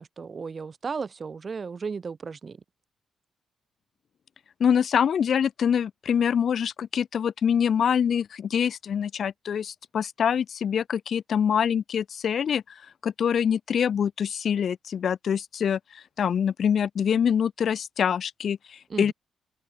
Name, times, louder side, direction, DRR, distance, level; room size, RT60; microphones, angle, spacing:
voice 1, 0.0-2.6 18.9-19.1, right 5 dB, 45° right, 7.0 m, -35 dB
voice 2, 4.6-19.1, left 8 dB, 65° left, 3.3 m, -25 dB
open air
cardioid pair, 65°, 0 cm